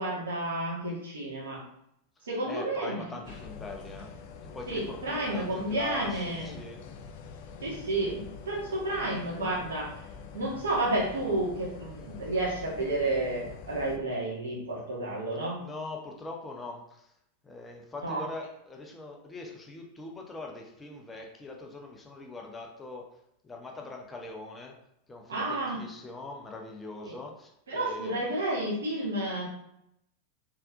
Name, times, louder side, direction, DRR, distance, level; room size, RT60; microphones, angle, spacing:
voice 1, 0.0-1.6 2.3-3.2 4.7-6.6 7.6-10.0 10.3-15.6 18.0-18.2 25.3-25.8 27.1-27.2 27.7-29.5, right 2 dB, 65° right, -4 dB, 1.6 m, -31 dB
voice 2, 2.5-4.1 4.5-6.8 15.6-17.1 17.4-23.1 23.4-24.7 25.1-28.4, left 3 dB, 15° left, 1 dB, 0.7 m, -42 dB
sound 1, 3.2-14.0, left 5 dB, 50° left, 0.4 m, -45 dB
4.4 x 3.6 x 2.6 m, 0.77 s
figure-of-eight pair, 90°, 0 cm